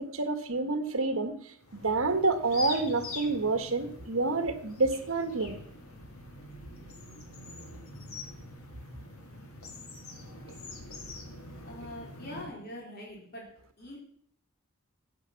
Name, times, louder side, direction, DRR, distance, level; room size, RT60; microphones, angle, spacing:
voice 1, 0.0-1.3 1.7-5.6, right 3 dB, 65° right, 1.5 m, -28 dB
sound 1, 1.6-12.4, left 2 dB, 80° left, 2.5 m, -44 dB
voice 2, 11.6-13.5 13.8-14.0, left 1 dB, 45° left, 3.9 m, -43 dB
15.0 x 8.5 x 5.9 m
head